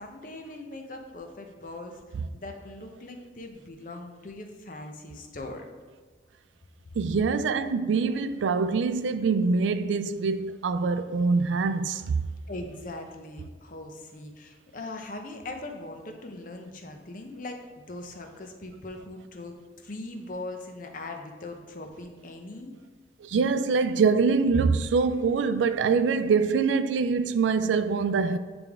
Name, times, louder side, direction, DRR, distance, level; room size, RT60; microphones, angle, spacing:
voice 1, 0.0-2.0 2.3-5.7 12.5-17.6 17.9-22.7, left 2 dB, 45° left, 0.7 m, -40 dB
voice 2, 7.0-12.3 23.2-28.4, right 5 dB, 85° right, 0.3 m, -24 dB
8.8 x 3.4 x 3.5 m
head